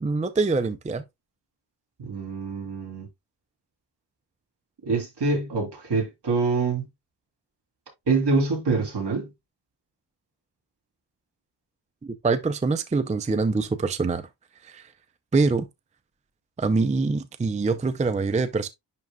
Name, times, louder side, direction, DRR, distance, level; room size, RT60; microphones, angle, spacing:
voice 1, 0.0-1.0 12.0-14.2 14.6-14.9 15.3-15.6 16.6-18.7, right 3 dB, 15° right, 0.4 m, -24 dB
voice 2, 2.0-3.1 4.9-6.8 8.1-9.3, right 4 dB, 70° right, 3.4 m, -25 dB
11.0 x 3.9 x 2.3 m
wide cardioid pair, 175°, 43 cm